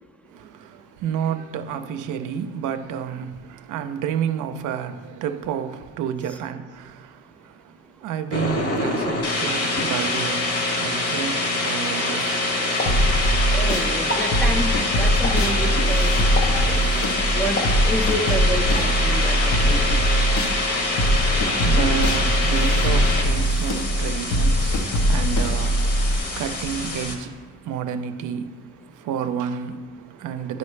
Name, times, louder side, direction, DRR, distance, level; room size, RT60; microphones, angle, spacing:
voice 1, 0.2-13.0 21.0-30.6, right 8 dB, 85° right, 0.5 m, -31 dB
sound 1, 8.3-27.1, left 2 dB, 50° left, 1.3 m, -25 dB
Explosion, 12.8-13.7 14.0-14.4 15.2-15.6 16.4-16.7 17.6-18.3 18.8-19.0, left 1 dB, 35° left, 0.9 m, -31 dB
sound 2, 12.9-13.9 14.3-20.6 21.0-26.2, equal, 70° left, 0.8 m, -21 dB
voice 2, 13.5-16.8 17.3-20.0, right 1 dB, 5° left, 0.4 m, -29 dB
9.5 x 5.3 x 3.2 m
cardioid pair, 90°, 30 cm